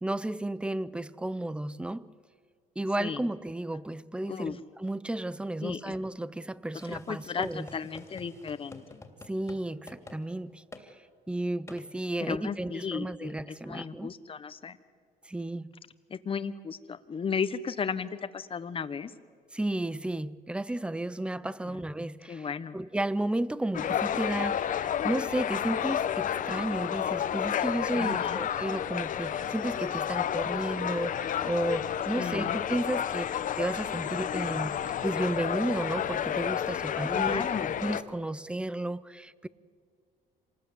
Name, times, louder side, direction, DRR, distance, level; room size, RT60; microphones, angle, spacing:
voice 1, 0.0-2.1 2.8-7.7 9.3-10.9 11.3-14.1 15.2-15.7 19.5-22.5 22.7-37.5 37.8-39.5, right 1 dB, 5° right, 0.6 m, -33 dB
voice 2, 5.6-5.9 6.9-9.0 12.2-14.8 16.1-19.1 21.6-21.8 22.3-22.8 28.0-28.4 32.2-32.6 37.1-37.7, left 6 dB, 30° left, 1.1 m, -35 dB
sound 1, 6.7-9.6 9.9-10.2 10.7-10.9 11.7-11.8, left 2 dB, 15° left, 2.9 m, -49 dB
sound 2, 23.7-38.0, left 9 dB, 50° left, 1.0 m, -31 dB
26.5 x 19.5 x 8.3 m
cardioid pair, 110°, 17 cm